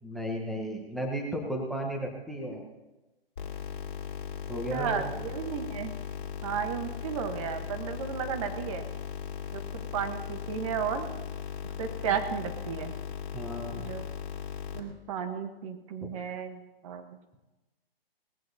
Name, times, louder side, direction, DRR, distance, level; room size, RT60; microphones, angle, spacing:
voice 1, 0.0-2.6 4.5-5.2 13.3-13.8 16.0-16.1, right 1 dB, ahead, 1 dB, 1.1 m, -34 dB
sound 1, 3.4-14.8, left 8 dB, 55° left, 2.4 m, -38 dB
voice 2, 4.7-5.9 6.4-8.8 9.5-11.1 11.8-12.9 13.7-14.0 14.7-17.0, right 7 dB, 35° right, 6 dB, 1.2 m, -33 dB
19.0 x 15.5 x 2.8 m, 1.1 s
figure-of-eight pair, 130°, 30 cm